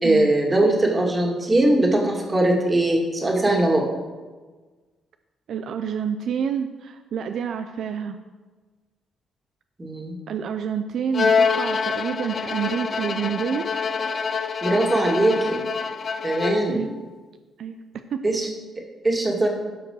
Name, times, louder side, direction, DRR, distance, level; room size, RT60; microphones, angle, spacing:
voice 1, 0.0-3.9 9.8-10.2 14.6-15.6 16.2-16.8 18.2-18.5 19.0-19.5, right 1 dB, 20° right, 0 dB, 2.2 m, -20 dB
voice 2, 5.5-8.2 10.3-13.7 16.7-16.9 17.6-17.8 18.1-18.2, right 7 dB, 65° right, 8 dB, 0.5 m, -28 dB
Bowed string instrument, 11.1-16.8, left 5 dB, 45° left, 0.5 m, -25 dB
12.5 x 4.8 x 6.2 m, 1.4 s
cardioid pair, 105°, 0 cm